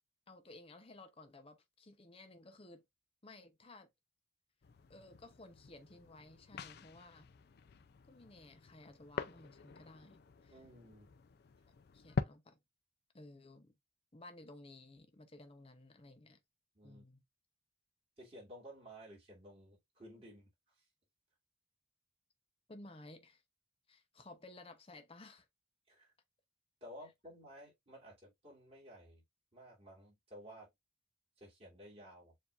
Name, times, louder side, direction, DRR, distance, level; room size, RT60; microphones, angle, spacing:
voice 1, 0.3-2.8 3.2-3.9 4.9-7.3 8.1-10.6 11.9-12.6 13.1-13.7 14.1-16.4 16.8-17.2 22.7-23.4 23.9-25.5, left 2 dB, 30° left, 0.7 m, -56 dB
sound 1, 4.6-12.2, left 4 dB, 55° left, 0.4 m, -45 dB
voice 2, 10.5-11.1 16.7-17.0 18.2-20.5 25.9-26.1 26.8-29.2 29.5-30.7 31.4-32.3, equal, 30° right, 2.6 m, -54 dB
7.0 x 2.8 x 2.4 m
head